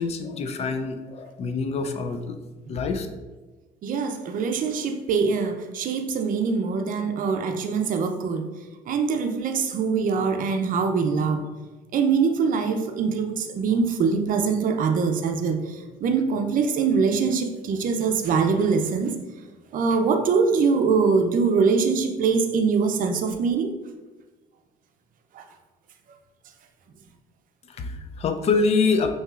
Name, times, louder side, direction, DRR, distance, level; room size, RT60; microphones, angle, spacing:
voice 1, 0.0-2.4 2.7-3.1 27.7-29.1, left 4 dB, 40° left, 7 dB, 0.4 m, -25 dB
voice 2, 3.8-8.4 8.9-11.4 11.9-19.1 19.7-23.7 25.3-25.4, right 5 dB, 55° right, 6 dB, 0.5 m, -23 dB
5.6 x 2.9 x 2.4 m, 1.2 s
cardioid pair, 110°, 17 cm